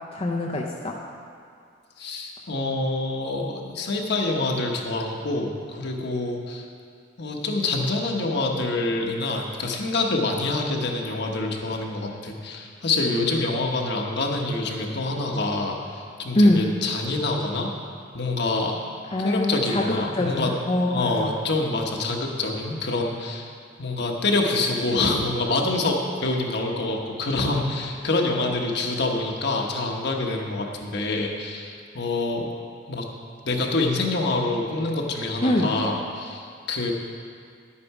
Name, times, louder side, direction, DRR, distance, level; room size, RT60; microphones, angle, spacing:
voice 1, 0.1-1.0 16.3-16.6 19.1-21.3 35.4-35.7, left 1 dB, 30° left, -1 dB, 0.6 m, -23 dB
voice 2, 2.0-6.7 7.2-17.7 18.1-18.8 19.2-20.5 20.9-23.5 23.8-32.5 32.9-33.0 33.4-36.9, left 2 dB, 60° left, 1 dB, 1.2 m, -26 dB
10.5 x 8.6 x 4.8 m, 2.3 s
head